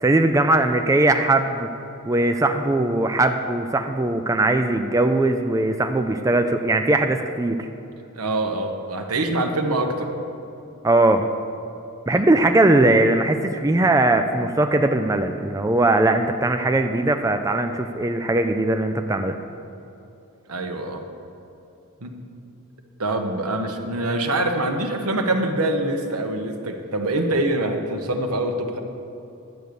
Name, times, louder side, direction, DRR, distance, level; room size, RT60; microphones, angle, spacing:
voice 1, 0.0-1.7 2.1-7.6 10.8-11.3 12.1-19.4, right 2 dB, 15° right, 6 dB, 0.4 m, -20 dB
voice 2, 8.2-10.1 20.5-21.0 22.0-22.1 23.0-28.8, right 1 dB, 80° right, 4 dB, 1.2 m, -24 dB
11.0 x 7.9 x 6.9 m, 2.9 s
head